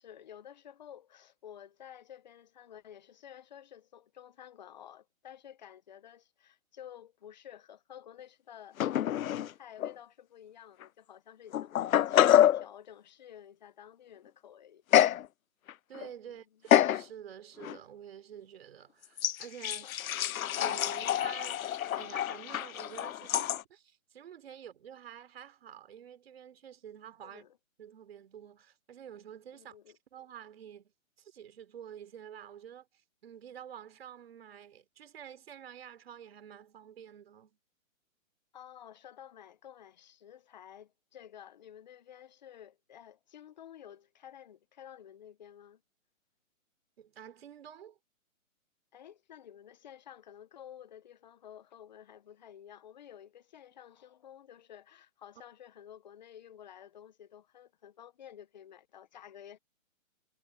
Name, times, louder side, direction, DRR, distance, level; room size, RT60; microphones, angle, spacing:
voice 1, 0.0-8.9 9.1-15.1 16.2-16.6 19.8-20.1 27.2-27.6 29.5-30.0 38.5-45.8 48.9-59.6, left 10 dB, 35° left, 1.1 m, -52 dB
sound 1, 8.8-9.5 9.8-9.9 10.8-10.9 11.5-12.7 14.9-15.3 15.7-16.1 16.7-17.0 17.6-17.8 19.2-23.6, left 11 dB, 80° left, 0.6 m, -27 dB
voice 2, 15.9-19.9 20.6-21.6 22.0-27.5 27.8-29.8 30.1-30.9 31.2-32.9 33.2-37.6 47.0-48.0, right 9 dB, 45° right, 3.6 m, -49 dB
hypercardioid pair, 165°, 41 cm